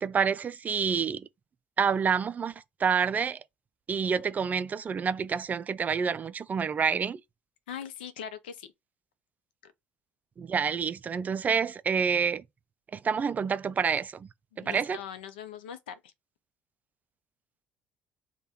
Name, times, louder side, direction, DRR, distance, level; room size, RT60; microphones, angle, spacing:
voice 1, 0.0-1.3 1.8-2.5 2.8-3.4 3.9-7.2 10.4-12.4 12.9-14.3 14.6-15.0, right 6 dB, 30° right, 0.3 m, -28 dB
voice 2, 7.7-8.7 9.6-9.7 14.5-16.1, left 8 dB, 70° left, 0.6 m, -41 dB
3.3 x 2.2 x 4.1 m
figure-of-eight pair, 55°, 5 cm